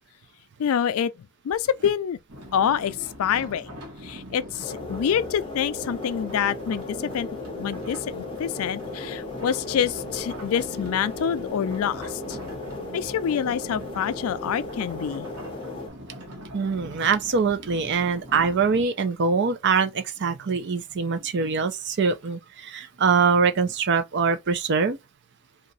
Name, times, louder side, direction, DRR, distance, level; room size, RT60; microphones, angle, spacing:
voice 1, 0.6-1.1 1.4-2.2 2.5-3.7 4.0-7.3 7.6-8.0 8.4-12.4 12.9-15.3, left 8 dB, 70° left, 0.3 m, -26 dB
sound 1, 2.3-18.9, equal, 80° right, 1.3 m, -42 dB
sound 2, 4.6-15.9, left 2 dB, 25° left, 0.6 m, -36 dB
voice 2, 16.5-25.0, right 5 dB, 50° right, 0.5 m, -23 dB
2.8 x 2.4 x 3.9 m
head